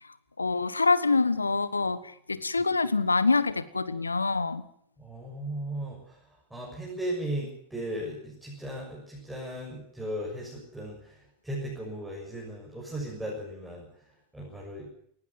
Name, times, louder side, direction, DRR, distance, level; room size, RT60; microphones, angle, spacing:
voice 1, 0.4-2.0 2.3-4.6, left 4 dB, 80° left, 16 dB, 1.2 m, -25 dB
voice 2, 5.0-14.9, right 1 dB, 5° right, -4 dB, 6.6 m, -37 dB
19.0 x 16.0 x 9.6 m, 0.67 s
figure-of-eight pair, 90°, 0 cm